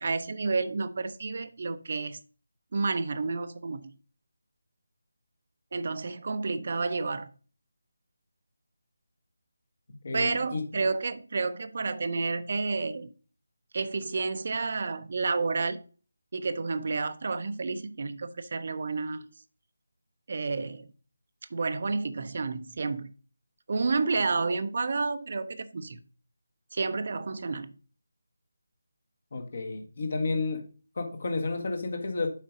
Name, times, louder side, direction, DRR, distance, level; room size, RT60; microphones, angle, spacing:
voice 1, 0.0-2.2 2.7-3.9 5.7-7.3 10.1-13.1 13.7-15.8 16.3-19.3 20.3-20.9 21.5-23.1 23.7-26.0 26.7-27.7, right 4 dB, 45° right, 0.6 m, -30 dB
voice 2, 10.0-10.6 29.3-30.6 31.0-32.3, left 3 dB, 50° left, 1.6 m, -31 dB
7.4 x 5.0 x 3.8 m
figure-of-eight pair, 155°, 0 cm